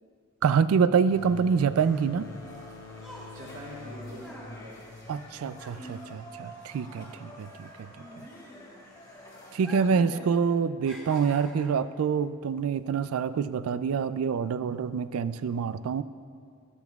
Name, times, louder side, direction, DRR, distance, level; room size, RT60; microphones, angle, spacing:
voice 1, 0.4-2.3 5.1-7.7 9.5-16.0, right 6 dB, 80° right, 15 dB, 0.3 m, -26 dB
sound 1, 1.0-6.5, left 3 dB, 85° left, 0.8 m, -46 dB
sound 2, 1.8-6.6 6.9-9.0 9.5-10.1 10.4-11.9 12.6-12.8, equal, 5° right, 1.3 m, -47 dB
sound 3, 2.2-9.8, equal, 15° left, 1.6 m, -49 dB
voice 2, 3.3-4.7 7.9-8.2 9.8-10.2, equal, 60° right, -6 dB, 2.3 m, -44 dB
13.5 x 10.5 x 2.4 m, 2.2 s
head